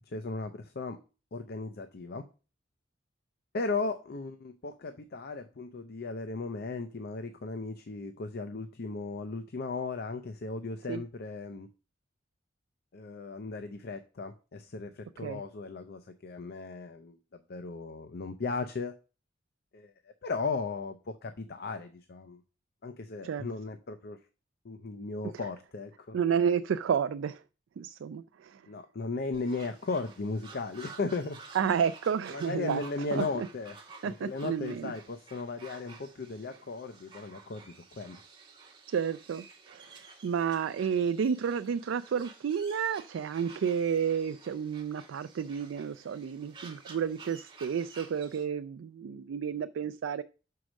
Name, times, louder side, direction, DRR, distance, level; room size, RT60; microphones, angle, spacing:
voice 1, 0.1-1.0 1.3-2.2 3.5-11.7 12.9-17.2 17.5-19.0 19.7-19.9 20.2-22.4 22.8-24.2 24.6-26.2 28.7-31.4 32.3-33.8 34.0-38.2, left 3 dB, 55° left, 8 dB, 0.6 m, -36 dB
voice 2, 26.1-27.4 27.8-28.6 31.5-32.8 33.1-33.5 34.0-34.9 38.9-50.2, right 7 dB, 70° right, 11 dB, 0.3 m, -31 dB
sound 1, 29.3-48.4, right 4 dB, 25° right, 1.5 m, -52 dB
6.3 x 4.7 x 6.2 m, 0.34 s
head